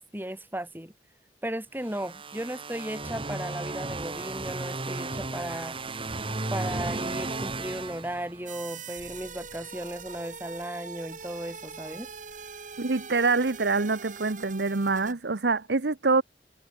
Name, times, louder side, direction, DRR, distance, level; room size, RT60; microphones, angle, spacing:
voice 1, 0.1-0.9 1.4-5.8 6.5-12.1, right 1 dB, 10° right, 7.9 m, -36 dB
sound 1, 1.8-8.7, right 2 dB, 30° right, 2.0 m, -34 dB
sound 2, 8.5-15.1, right 5 dB, 45° right, 7.6 m, -42 dB
voice 2, 12.8-16.2, right 3 dB, 70° right, 1.0 m, -25 dB
head